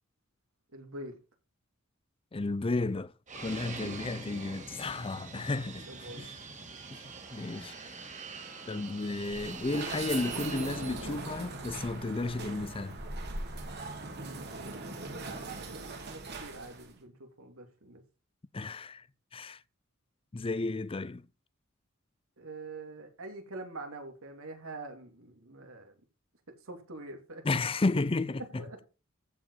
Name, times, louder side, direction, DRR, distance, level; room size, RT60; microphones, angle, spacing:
voice 1, 0.7-1.2 3.8-4.4 5.8-6.3 15.0-18.0 22.4-26.0 26.5-27.7 28.6-28.9, right 2 dB, 90° right, 2.6 m, -46 dB
voice 2, 2.3-5.9 6.2-6.3 6.9-7.7 8.7-13.0 18.5-19.0 19.3-19.6 20.3-21.3 27.4-28.6, left 3 dB, 25° left, 0.5 m, -33 dB
Fixed-wing aircraft airplane, 3.3-11.1, right 4 dB, 35° right, 2.4 m, -44 dB
sound 1, 9.1-16.9, right 3 dB, 55° right, 2.8 m, -40 dB
15.0 x 5.2 x 5.4 m
head